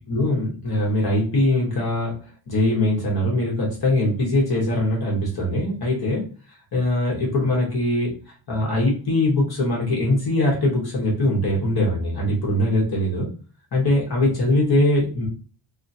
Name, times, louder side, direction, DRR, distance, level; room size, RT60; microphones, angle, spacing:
voice 1, 0.1-13.3 13.7-15.3, left 1 dB, 55° left, -3 dB, 1.2 m, -22 dB
2.7 x 2.5 x 2.6 m, 0.38 s
wide cardioid pair, 170°, 46 cm